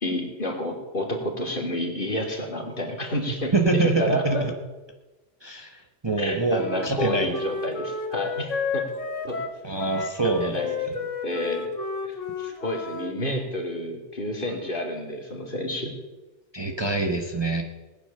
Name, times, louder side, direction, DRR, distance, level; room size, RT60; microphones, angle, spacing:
voice 1, 0.0-4.4 6.2-8.9 9.2-9.4 10.4-10.8 11.2-11.7 12.0-15.9, left 1 dB, 45° left, 1 dB, 2.8 m, -30 dB
voice 2, 3.5-4.5 5.4-7.3 9.6-10.6 16.5-17.6, right 3 dB, 20° right, 3 dB, 1.2 m, -25 dB
Wind instrument woodwind instrument, 6.5-13.1, left 4 dB, 90° left, 2.0 m, -32 dB
18.0 x 10.5 x 6.7 m, 1.2 s
omnidirectional pair, 1.2 m